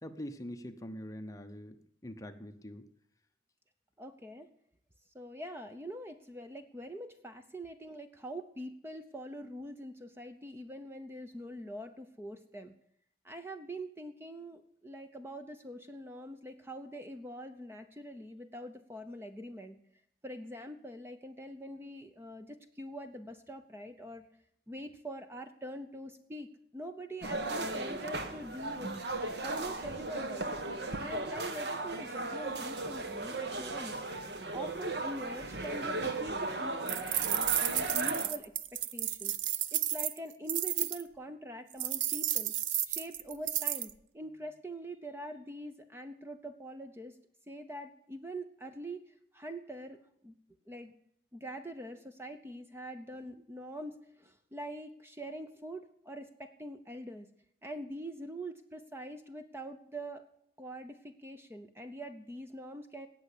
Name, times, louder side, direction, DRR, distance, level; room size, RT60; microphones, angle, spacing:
voice 1, 0.0-1.8 2.0-2.8, equal, 20° left, 7 dB, 0.9 m, -43 dB
voice 2, 4.0-4.5 5.1-12.7 13.2-19.8 20.2-24.2 24.7-26.5 26.7-30.5 31.0-34.0 34.5-39.3 39.7-42.5 42.9-47.1 47.5-50.0 50.2-50.3 50.7-50.9 51.3-53.9 54.2-57.3 57.6-60.2 60.6-63.1, right 1 dB, 15° right, 8 dB, 0.8 m, -44 dB
sound 1, 27.2-38.3, right 2 dB, 65° right, 1.5 m, -36 dB
sound 2, 36.9-41.0 41.8-43.9, right 11 dB, 80° right, 0.7 m, -32 dB
18.0 x 6.9 x 8.5 m, 0.70 s
head